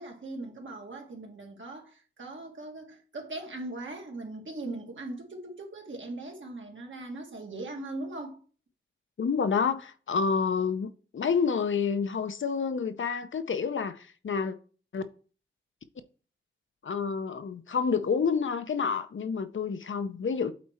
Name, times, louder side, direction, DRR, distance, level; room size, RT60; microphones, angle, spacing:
voice 1, 0.0-8.4, right 2 dB, 75° right, 1.9 m, -40 dB
voice 2, 9.2-14.6 14.9-15.0 16.8-20.5, left 5 dB, 75° left, 0.7 m, -29 dB
8.3 x 4.3 x 4.4 m
wide cardioid pair, 100°, 20 cm